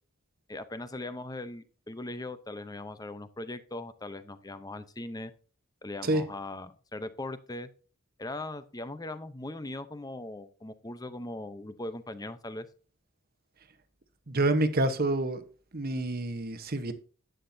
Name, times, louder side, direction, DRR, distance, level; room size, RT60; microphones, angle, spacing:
voice 1, 0.5-5.3 5.8-7.7 8.2-12.7, left 2 dB, 15° left, 0.7 m, -39 dB
voice 2, 14.3-15.4 15.7-16.9, right 2 dB, 45° right, 1.0 m, -27 dB
11.5 x 8.9 x 2.7 m
head